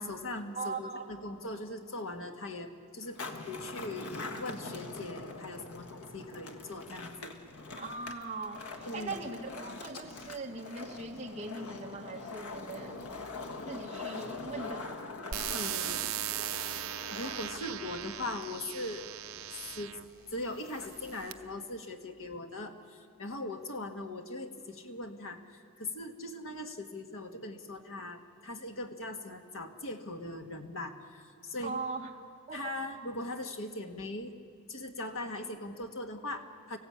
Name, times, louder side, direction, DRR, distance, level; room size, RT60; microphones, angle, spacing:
voice 1, 0.0-3.2 3.5-7.3 8.8-9.2 15.5-16.1 17.1-19.1 19.7-20.0 20.3-31.8 32.5-34.3 34.7-36.8, left 2 dB, 65° left, 4 dB, 1.7 m, -40 dB
voice 2, 0.5-1.1 7.8-13.1 13.7-14.9 31.6-32.1 32.5-32.7, right 3 dB, 30° right, 0 dB, 1.7 m, -40 dB
Skateboard, 3.0-21.7, left 3 dB, 85° left, 1.6 m, -44 dB
sound 1, 15.3-20.1 20.8-21.3, right 11 dB, 70° right, 0.7 m, -38 dB
25.0 x 16.0 x 8.7 m, 2.4 s
head